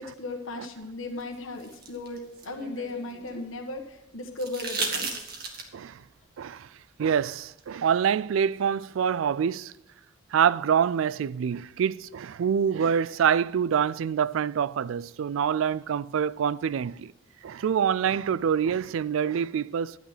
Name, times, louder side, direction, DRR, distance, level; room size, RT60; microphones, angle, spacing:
voice 1, 0.0-2.2 2.4-5.2, left 2 dB, 80° left, 1.3 m, -36 dB
sound 1, 1.2-3.5 4.4-5.9 7.6-7.7, right 4 dB, 50° right, 1.8 m, -35 dB
voice 2, 6.4-6.7 7.0-9.7 10.3-17.1 17.4-20.0, right 7 dB, 80° right, 0.3 m, -26 dB
11.5 x 9.3 x 4.9 m
head